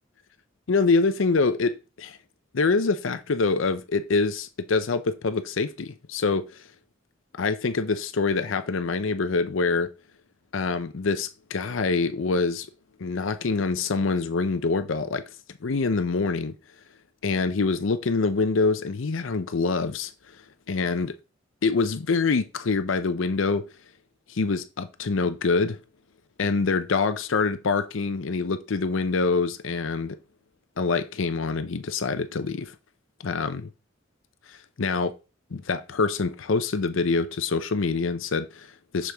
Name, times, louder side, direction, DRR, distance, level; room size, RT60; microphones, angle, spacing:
voice 1, 0.7-2.2 2.5-6.7 7.4-9.9 10.5-12.7 13.0-15.2 15.6-16.5 17.2-20.4 20.7-21.1 21.6-23.6 24.3-25.8 26.4-30.2 30.8-32.7 33.2-33.7 34.5-35.2 35.5-39.1, left 4 dB, 75° left, 0.6 m, -25 dB
6.6 x 6.4 x 3.4 m
head